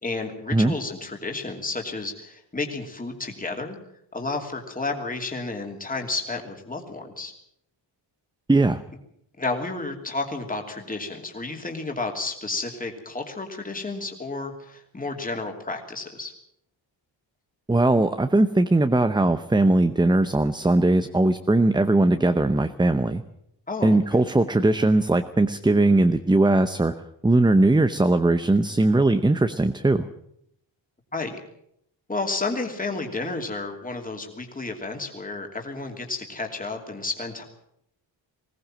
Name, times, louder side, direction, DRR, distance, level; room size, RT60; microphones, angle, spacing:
voice 1, 0.0-3.8 4.1-7.3 9.4-16.3 23.7-24.2 31.1-31.4 32.1-37.4, left 3 dB, 20° left, 3 dB, 2.9 m, -31 dB
voice 2, 8.5-8.8 17.7-23.2 23.8-26.9 27.2-30.1, right 2 dB, 10° right, 9 dB, 0.7 m, -20 dB
20.5 x 17.5 x 7.6 m, 0.73 s
wide cardioid pair, 150°, 46 cm